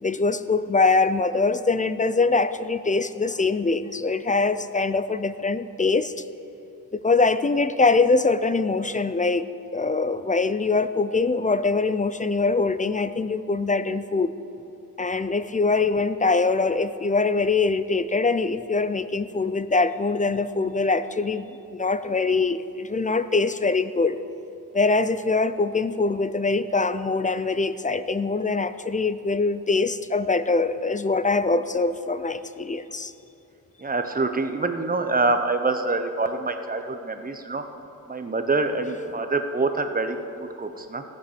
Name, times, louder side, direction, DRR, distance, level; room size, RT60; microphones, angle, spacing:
voice 1, 0.0-6.2 6.9-9.4 9.7-14.3 15.0-24.2 24.7-33.1, left 3 dB, 25° left, 13 dB, 0.4 m, -23 dB
voice 2, 33.8-37.6 38.1-41.0, right 3 dB, 25° right, 7 dB, 0.9 m, -26 dB
14.5 x 8.0 x 6.8 m, 2.7 s
wide cardioid pair, 125°, 34 cm